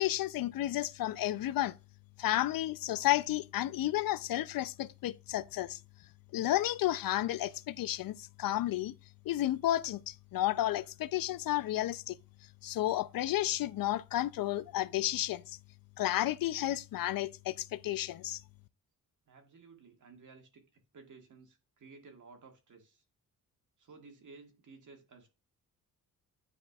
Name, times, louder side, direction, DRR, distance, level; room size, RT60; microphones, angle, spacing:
voice 1, 0.0-1.7 2.2-5.8 6.3-8.9 9.3-12.2 12.6-15.6 16.0-18.4, left 14 dB, 75° left, 0.5 m, -32 dB
voice 2, 19.3-23.0 23.8-25.3, right 4 dB, 60° right, 1.9 m, -55 dB
9.8 x 4.9 x 2.3 m
cardioid pair, 95°, 34 cm